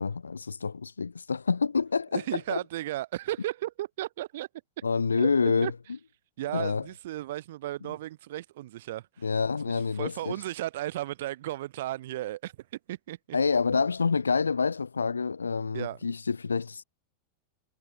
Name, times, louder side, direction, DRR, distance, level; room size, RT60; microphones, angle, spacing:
voice 1, 0.0-2.6 4.8-5.7 6.5-6.8 9.2-10.3 13.3-16.8, left 5 dB, 75° left, 1.1 m, -27 dB
voice 2, 2.1-4.5 5.2-5.3 5.6-5.7 6.4-9.3 9.7-13.4 13.7-13.8 15.7-16.0, right 15 dB, 55° right, 2.6 m, -35 dB
figure-of-eight pair, 90°, 0 cm